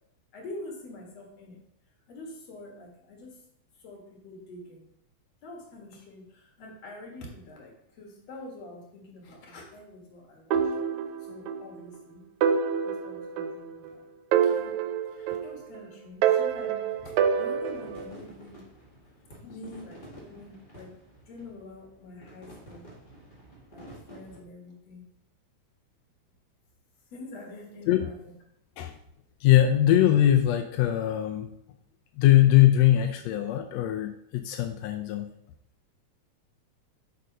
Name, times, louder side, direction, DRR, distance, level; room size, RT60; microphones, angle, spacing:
voice 1, 0.3-1.6 2.1-3.4 3.8-4.8 5.4-10.8 11.2-12.2 12.8-14.1 14.4-14.8 15.1-18.6 19.5-21.0 21.3-22.9 23.7-25.0 27.1-28.3, left 2 dB, 60° left, 0 dB, 2.8 m, -46 dB
sound 1, 10.5-11.7 12.0-12.1 12.4-13.9 14.3-15.8 16.2-18.1, right 7 dB, 75° right, 1.8 m, -26 dB
sound 2, 16.9-24.4, right 1 dB, 25° left, 1.2 m, -50 dB
voice 2, 29.4-31.5 32.2-35.3, left 12 dB, 75° left, 4 dB, 1.6 m, -21 dB
6.8 x 5.0 x 5.3 m, 0.74 s
omnidirectional pair, 3.5 m